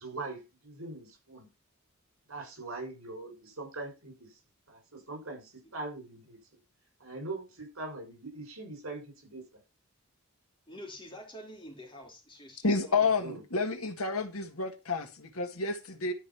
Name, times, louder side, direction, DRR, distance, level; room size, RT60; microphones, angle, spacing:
voice 1, 0.0-1.5 2.3-4.4 4.7-6.4 7.0-9.6 13.2-13.4, right 2 dB, 75° right, 6.3 m, -42 dB
voice 2, 10.7-13.3, equal, 25° left, 3.4 m, -47 dB
voice 3, 12.6-16.1, left 4 dB, 85° left, 1.8 m, -30 dB
12.0 x 5.2 x 5.8 m
head